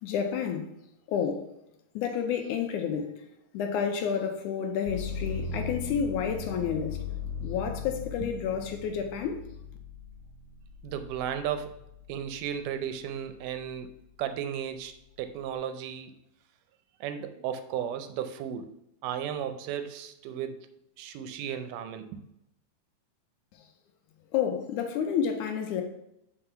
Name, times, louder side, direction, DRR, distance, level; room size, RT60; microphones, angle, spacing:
voice 1, 0.0-0.7 1.1-1.5 2.0-3.2 3.5-7.0 7.4-9.4 24.3-25.8, left 7 dB, 75° left, 2.0 m, -30 dB
sound 1, 4.9-12.7 13.2-14.0, left 4 dB, 60° left, 1.8 m, -38 dB
voice 2, 10.8-11.8 12.1-13.9 14.2-16.1 17.0-18.7 19.0-20.7 21.0-22.2, right 9 dB, 80° right, 2.1 m, -34 dB
5.8 x 4.9 x 5.6 m
omnidirectional pair, 3.8 m